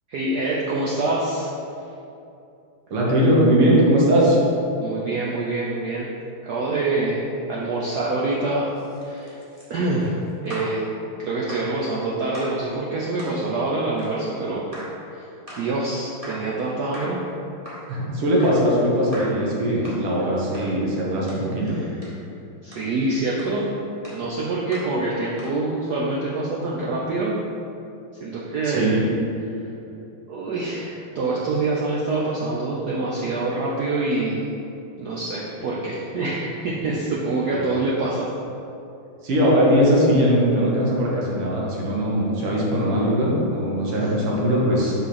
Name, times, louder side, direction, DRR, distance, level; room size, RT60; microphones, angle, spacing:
voice 1, 0.1-1.5 4.8-6.1 6.4-8.7 9.0-9.4 9.7-10.2 10.4-10.8 11.2-14.7 15.1-15.3 15.6-17.2 21.6-21.9 22.6-23.7 24.1-27.4 28.2-28.9 30.3-34.5 35.0-38.3, right 2 dB, 65° right, -5 dB, 1.1 m, -25 dB
voice 2, 2.9-4.4 17.9-21.8 28.6-29.1 37.5-37.6 39.2-45.0, equal, 85° right, -5 dB, 2.4 m, -20 dB
sound 1, 8.7-10.8 11.5-11.8 12.3-12.6 13.2-13.4 14.0-14.2 14.7-15.0 15.5-15.7 16.2-16.5 16.9-17.3 17.6-17.9 18.4-18.7 19.1-19.4 19.8-20.1 20.5-20.7 21.3-21.5 22.0-22.2 22.7-22.9 23.4-23.6 24.0-24.3 24.7-25.0 25.4-25.6, right 1 dB, 20° right, 1.2 m, -39 dB
5.7 x 5.2 x 5.8 m, 2.7 s
omnidirectional pair, 2.4 m